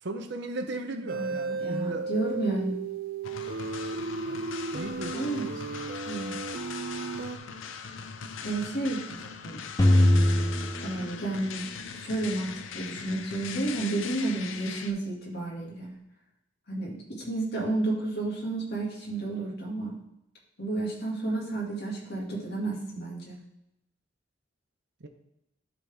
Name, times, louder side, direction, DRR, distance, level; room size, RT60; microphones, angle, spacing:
voice 1, 0.0-2.1 4.2-4.4 4.7-5.3 25.0-25.1, right 2 dB, 65° right, 6 dB, 0.8 m, -36 dB
sound 1, 1.1-7.4, right 4 dB, 50° right, 0.4 m, -34 dB
voice 2, 1.2-2.8 5.1-5.5 6.1-6.4 8.4-9.6 10.8-11.6 11.9-15.9 16.7-19.9 20.6-23.4, right 2 dB, 60° left, -2 dB, 2.1 m, -31 dB
sound 2, 3.2-14.9, left 6 dB, 80° left, 0.6 m, -40 dB
sound 3, 9.8-12.0, left 1 dB, 15° left, 0.6 m, -22 dB
11.5 x 4.1 x 3.4 m, 0.87 s
head